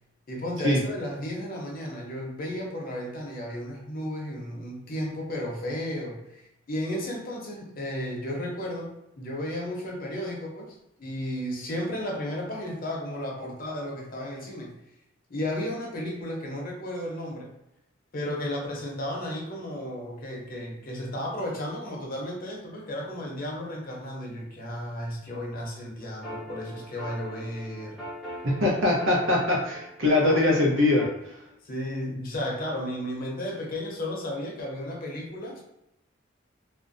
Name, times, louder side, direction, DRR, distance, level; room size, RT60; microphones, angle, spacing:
voice 1, 0.3-14.8 15.3-17.5 18.1-28.0 31.6-35.6, left 1 dB, 45° left, -1 dB, 0.7 m, -34 dB
sound 1, 26.0-31.1, equal, ahead, 0.7 m, -41 dB
voice 2, 28.4-31.4, left 2 dB, 85° right, -2 dB, 0.8 m, -22 dB
2.5 x 2.1 x 2.5 m, 0.86 s
head